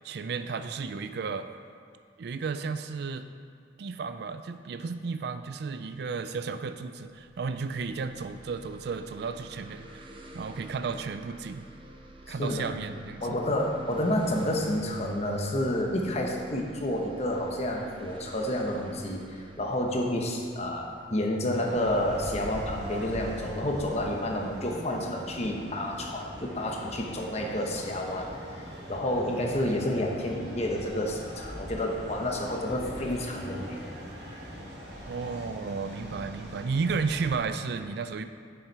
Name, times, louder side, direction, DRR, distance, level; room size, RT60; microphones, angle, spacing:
voice 1, 0.0-1.5 2.2-3.3 3.8-10.1 10.3-11.7 12.3-13.4 35.1-38.2, right 5 dB, 65° right, 10 dB, 0.4 m, -33 dB
sound 1, 7.0-22.4, right 1 dB, 30° right, 0.7 m, -50 dB
voice 2, 12.3-12.7 13.2-28.3 28.9-33.8, left 1 dB, 40° left, 0 dB, 1.0 m, -30 dB
sound 2, 21.5-37.4, equal, 80° right, 1.8 m, -41 dB
7.2 x 6.9 x 4.7 m, 2.3 s
head